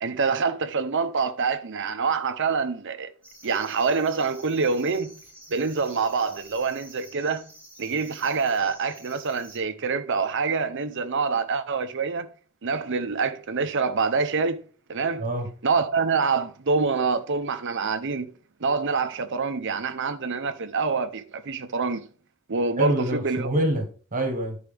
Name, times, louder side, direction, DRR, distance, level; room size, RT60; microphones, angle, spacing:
voice 1, 0.0-3.1 3.4-5.1 5.5-7.4 7.8-12.3 12.6-14.6 14.9-15.3 15.6-18.3 18.6-22.1 22.5-23.5, right 4 dB, 55° right, 0.8 m, -26 dB
sound 1, 3.2-9.6, equal, 5° left, 4.0 m, -50 dB
voice 2, 22.8-24.6, right 1 dB, 40° right, 1.5 m, -26 dB
12.0 x 4.8 x 3.4 m
head